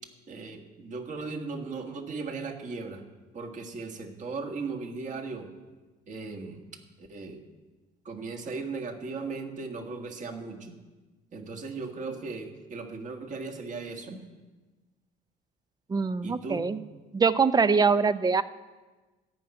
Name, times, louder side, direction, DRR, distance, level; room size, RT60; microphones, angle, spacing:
voice 1, 0.3-3.0 3.3-5.5 6.1-6.6 7.0-7.4 8.1-10.7 11.3-14.2 16.2-16.6, right 4 dB, 45° right, 4 dB, 1.8 m, -37 dB
voice 2, 15.9-16.8 17.1-18.4, right 5 dB, 25° right, 13 dB, 0.5 m, -23 dB
14.0 x 5.9 x 8.8 m, 1.2 s
cardioid pair, 110°, 17 cm